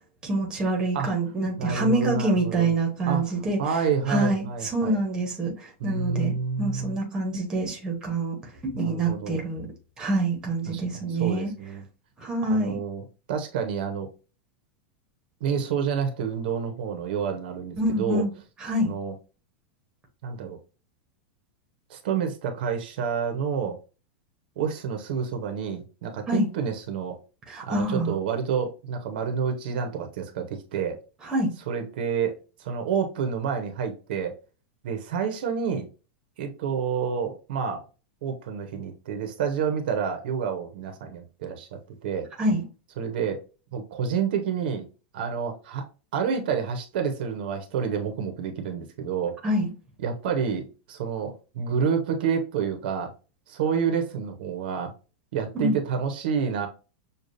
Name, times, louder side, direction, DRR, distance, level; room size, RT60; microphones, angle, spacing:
voice 1, 0.2-3.6 4.1-8.4 8.6-9.7 10.0-11.5 12.2-12.8 17.8-18.3 18.6-18.9 26.3-26.5 27.5-28.1 31.2-31.5 42.4-42.6 49.4-49.7 55.5-55.7, right 2 dB, 10° right, 1.0 m, -26 dB
voice 2, 1.6-2.7 3.1-5.0 5.8-6.9 8.7-9.5 10.7-11.8 12.5-14.1 15.4-18.2 18.8-19.1 20.2-20.6 21.9-23.8 24.6-27.2 27.6-31.0 31.7-34.3 34.8-35.9 36.4-37.8 38.2-41.7 42.0-42.3 43.0-43.4 43.7-44.9 45.1-45.8 46.1-49.3 50.0-53.1 53.5-54.9 55.3-56.7, right 6 dB, 55° right, 0.8 m, -29 dB
6.5 x 2.3 x 2.6 m
supercardioid pair, 175°, 6 cm